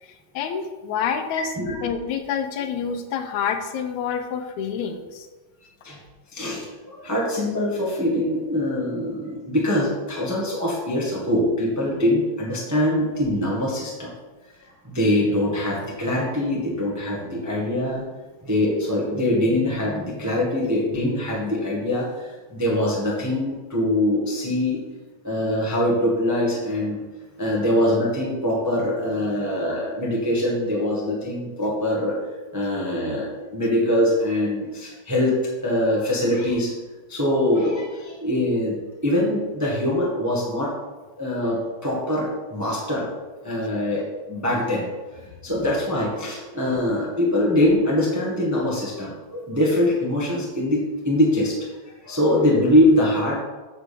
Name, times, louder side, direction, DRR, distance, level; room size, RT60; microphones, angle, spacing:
voice 1, 0.4-1.5 1.8-5.3, left 7 dB, 85° left, 7 dB, 2.0 m, -27 dB
voice 2, 1.3-1.9 5.8-6.0 6.3-14.1 14.8-18.0 18.4-24.8 25.2-27.0 27.4-32.2 32.5-36.7 37.1-38.8 39.0-40.7 41.2-43.1 43.4-44.0 44.3-44.9 45.1-51.7 52.0-53.4, left 1 dB, 10° right, -4 dB, 0.9 m, -23 dB
9.2 x 3.7 x 6.6 m, 1.2 s
omnidirectional pair, 3.4 m